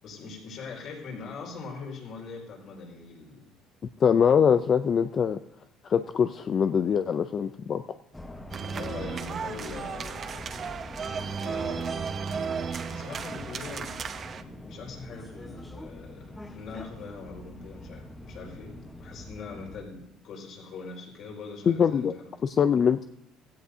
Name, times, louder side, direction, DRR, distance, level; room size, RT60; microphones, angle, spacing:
voice 1, 0.0-3.5 8.6-10.5 11.1-12.1 12.9-14.0 14.4-22.3, left 4 dB, 55° left, 0 dB, 5.2 m, -42 dB
voice 2, 4.0-5.4 5.9-7.8 21.7-22.1 22.4-23.1, left 7 dB, 40° left, 9 dB, 0.5 m, -23 dB
sound 1, 8.1-19.8, left 1 dB, 10° left, 1.1 m, -44 dB
sound 2, 8.5-14.4, right 6 dB, 35° right, 0.8 m, -34 dB
16.0 x 16.0 x 2.8 m, 0.83 s
cardioid pair, 125°, 0 cm